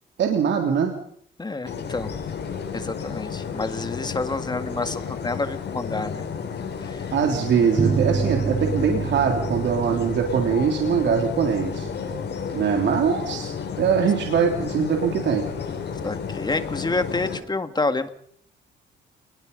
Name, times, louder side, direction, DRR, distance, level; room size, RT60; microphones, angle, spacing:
voice 1, 0.2-0.9 7.1-11.9 12.5-13.5 13.8-15.4, right 6 dB, 65° right, 2 dB, 3.5 m, -22 dB
voice 2, 1.4-2.1 2.7-6.2 6.8-7.0 16.0-18.1, left 3 dB, 20° left, 8 dB, 2.3 m, -28 dB
sound 1, 1.6-17.4, left 6 dB, 60° left, 6.6 m, -32 dB
sound 2, 7.8-12.9, right 5 dB, 30° right, 1.7 m, -29 dB
28.0 x 21.0 x 5.5 m, 0.65 s
cardioid pair, 90°, 20 cm